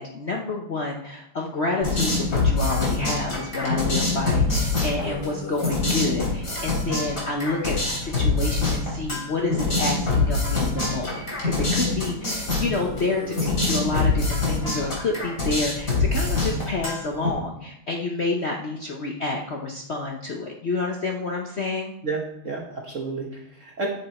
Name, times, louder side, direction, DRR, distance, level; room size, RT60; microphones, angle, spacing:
voice 1, 0.0-21.9, left 3 dB, 75° left, 0 dB, 0.6 m, -29 dB
sound 1, 1.8-17.3, left 3 dB, 35° left, 3.5 m, -25 dB
voice 2, 22.0-23.9, right 3 dB, 45° right, -1 dB, 1.2 m, -31 dB
9.2 x 6.9 x 4.3 m, 0.75 s
omnidirectional pair, 2.4 m